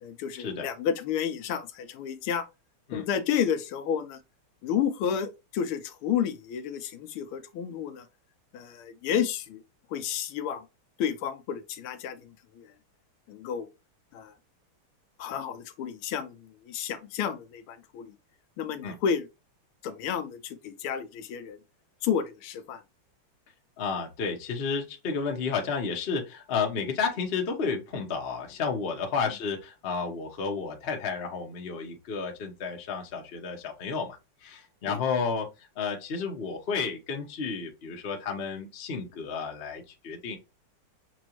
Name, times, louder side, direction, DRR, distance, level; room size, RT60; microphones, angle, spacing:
voice 1, 0.0-2.5 2.9-4.2 4.6-8.1 8.5-9.6 9.9-10.6 11.0-12.3 12.5-12.7 13.3-13.7 14.1-14.3 15.2-18.1 18.6-19.2 19.8-21.6 22.0-22.8 34.9-35.0, left 8 dB, 80° left, 1.5 m, -31 dB
voice 2, 23.8-40.4, left 5 dB, 45° left, 0.8 m, -32 dB
6.1 x 2.6 x 2.9 m
omnidirectional pair, 2.4 m